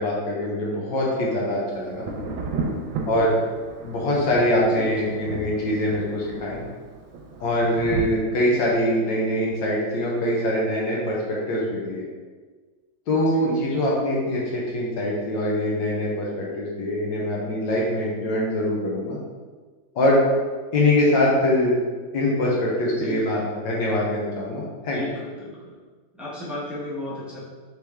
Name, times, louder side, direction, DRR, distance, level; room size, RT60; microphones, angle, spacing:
voice 1, 0.0-2.1 3.1-3.3 3.8-6.6 7.4-12.0 13.1-19.2 19.9-20.2 20.7-21.7 22.1-25.0, left 1 dB, 70° left, -4 dB, 1.5 m, -23 dB
Thunder, 1.9-8.0, right 3 dB, 80° right, 1.4 m, -33 dB
voice 2, 4.7-5.1 13.1-13.7 22.8-23.4 24.9-25.7 26.2-27.4, left 2 dB, ahead, -9 dB, 0.5 m, -35 dB
4.4 x 3.2 x 3.5 m, 1.4 s
omnidirectional pair, 2.1 m